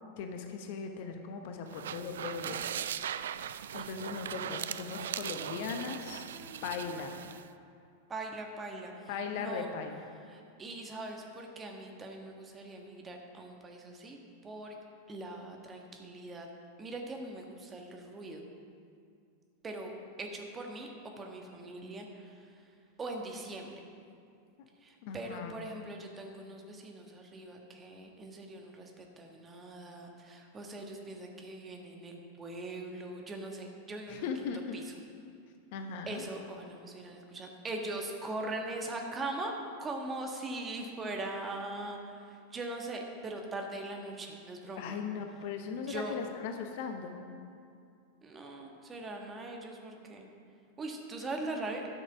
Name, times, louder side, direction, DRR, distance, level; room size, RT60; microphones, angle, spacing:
voice 1, 0.2-2.7 3.7-6.2 6.6-7.2 9.1-10.1 25.0-25.7 34.1-34.8 35.7-36.2 44.8-47.2, left 5 dB, 50° left, 5 dB, 0.9 m, -38 dB
sound 1, 1.7-7.5, right 9 dB, 60° right, 0.3 m, -39 dB
voice 2, 8.1-8.9 9.3-9.7 10.3-14.7 15.1-16.5 16.8-18.5 19.6-19.9 20.2-20.9 21.2-22.3 23.0-23.7 24.8-34.3 34.7-34.8 36.1-39.5 39.8-45.0 45.8-46.1 48.2-50.2 50.8-51.8, right 2 dB, 20° right, 2 dB, 1.5 m, -41 dB
12.0 x 6.6 x 5.8 m, 2.4 s
figure-of-eight pair, 90°, 0 cm